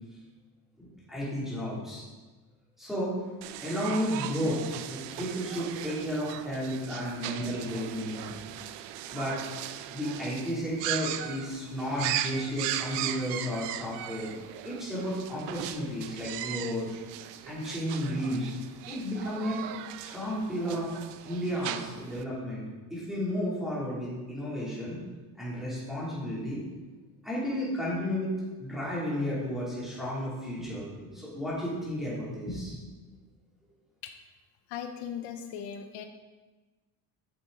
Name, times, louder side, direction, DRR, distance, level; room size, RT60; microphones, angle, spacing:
voice 1, 0.8-2.0 2.8-3.2 3.6-4.6 4.9-8.3 9.1-14.3 14.6-16.9 17.5-18.6 18.9-19.6 20.0-20.9 21.2-22.6 22.9-25.0 25.4-26.6 27.2-28.3 28.6-32.8, equal, ahead, -9 dB, 2.8 m, -33 dB
sound 1, 3.4-22.2, right 12 dB, 80° right, 0.6 m, -38 dB
voice 2, 34.7-36.0, left 8 dB, 75° left, 6 dB, 0.8 m, -38 dB
8.9 x 6.8 x 3.8 m, 1.3 s
cardioid pair, 175°, 41 cm